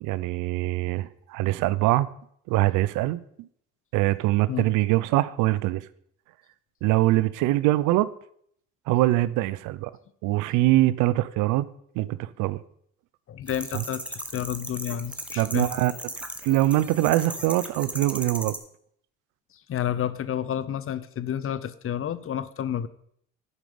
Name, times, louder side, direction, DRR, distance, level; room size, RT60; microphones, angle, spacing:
voice 1, 0.0-2.1 2.5-3.2 3.9-5.8 6.8-8.1 8.9-9.9 10.2-11.7 12.0-12.6 13.7-13.8 15.4-15.9 16.4-18.6, right 16 dB, 80° right, 0.5 m, -23 dB
voice 2, 13.3-15.7 19.7-22.9, left 10 dB, 45° left, 0.7 m, -30 dB
sound 1, 13.5-18.6, right 1 dB, 5° right, 1.3 m, -37 dB
11.0 x 5.3 x 5.1 m
supercardioid pair, 70°, 30 cm